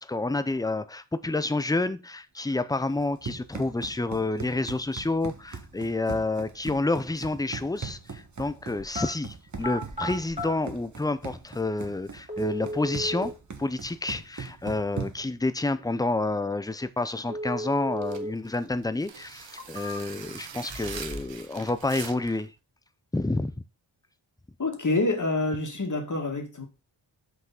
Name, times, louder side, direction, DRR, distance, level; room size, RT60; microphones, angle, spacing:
voice 1, 0.0-22.5 23.1-23.5, left 2 dB, 10° left, 0.6 m, -29 dB
Run, 2.9-15.4, right 5 dB, 35° right, 1.4 m, -40 dB
sound 1, 8.8-9.1 9.5-10.5 11.5-11.6 12.3-13.3 17.3-18.3 18.7-18.8 19.4-20.3 20.7-21.4 21.7-22.3, equal, 15° right, 2.5 m, -35 dB
sound 2, 18.0-22.5, right 7 dB, 65° right, 1.1 m, -42 dB
voice 2, 24.6-26.7, left 2 dB, 40° left, 2.1 m, -27 dB
5.9 x 5.7 x 6.0 m
wide cardioid pair, 115°, 47 cm